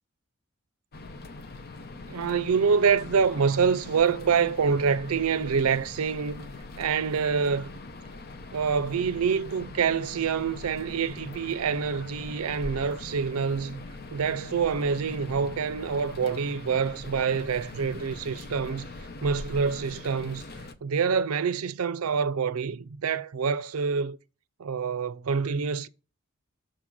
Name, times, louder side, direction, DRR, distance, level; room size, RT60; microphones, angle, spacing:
sound 1, 0.9-20.7, left 2 dB, 45° left, 0.7 m, -42 dB
voice 1, 2.1-6.5 6.8-7.7 8.5-13.8 14.1-18.9 19.2-20.4 20.8-24.2 24.6-25.9, right 6 dB, 85° right, 0.5 m, -26 dB
6.6 x 3.8 x 6.0 m
head